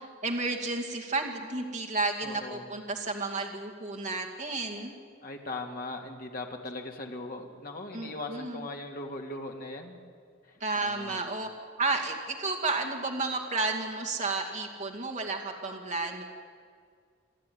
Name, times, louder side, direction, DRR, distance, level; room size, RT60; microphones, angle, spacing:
voice 1, 0.0-4.9 7.9-8.7 10.6-11.5 11.8-16.2, right 3 dB, 35° right, 0 dB, 2.3 m, -32 dB
voice 2, 2.2-2.7 5.2-10.0 10.4-11.2, left 2 dB, 45° left, 2 dB, 2.2 m, -39 dB
27.5 x 12.5 x 9.4 m, 2.1 s
head